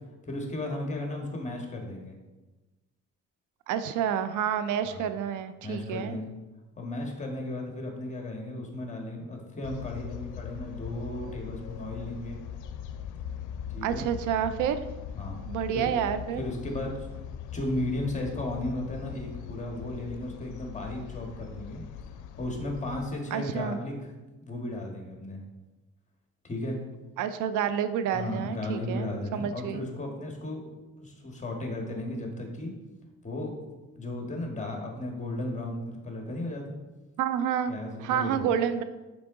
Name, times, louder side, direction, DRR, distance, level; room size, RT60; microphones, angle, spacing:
voice 1, 0.2-2.2 4.8-5.1 5.6-6.3 6.8-12.4 13.7-14.1 15.2-15.4 15.7-15.9 16.4-17.0 17.5-21.8 22.4-24.1 24.4-25.4 26.4-26.8 28.1-30.6 31.0-32.7 33.2-33.5 34.0-36.8 37.7-38.5, left 1 dB, 25° left, 1 dB, 1.6 m, -35 dB
voice 2, 3.7-6.2 13.8-14.8 15.5-16.4 23.3-23.8 27.2-29.8 37.2-37.7 38.0-38.8, right 9 dB, 85° right, 11 dB, 0.5 m, -29 dB
sound 1, 9.6-23.1, left 9 dB, 85° left, 0.5 m, -40 dB
6.0 x 4.8 x 3.7 m, 1.1 s
cardioid pair, 90°, 30 cm